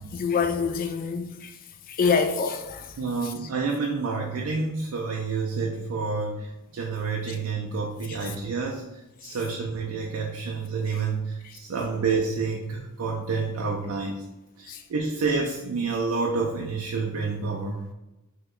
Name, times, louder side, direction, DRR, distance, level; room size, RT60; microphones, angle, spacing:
voice 1, 0.1-1.6 1.9-3.0 3.2-3.3 8.1-8.2 9.2-9.4 10.9-11.0 11.4-11.5 14.7-14.8, left 5 dB, 40° left, 6 dB, 0.3 m, -27 dB
voice 2, 3.0-8.8 9.2-14.2 14.6-17.8, right 4 dB, 70° right, 0 dB, 0.4 m, -29 dB
2.9 x 2.2 x 3.6 m, 0.99 s
head